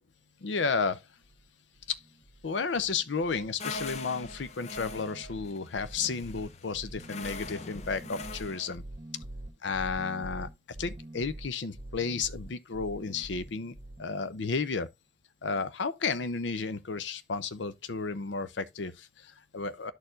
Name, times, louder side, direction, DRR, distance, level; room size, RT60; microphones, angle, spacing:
voice 1, 0.4-1.0 1.9-2.0 2.4-8.8 9.6-10.5 10.8-14.9 15.4-19.9, left 4 dB, 85° left, 0.6 m, -32 dB
sound 1, 1.2-1.5 1.8-2.5 2.8-3.5 3.7-14.0, right 1 dB, 35° right, 1.0 m, -45 dB
sound 2, 3.6-8.8, left 3 dB, 35° left, 0.5 m, -42 dB
13.0 x 4.5 x 2.5 m
head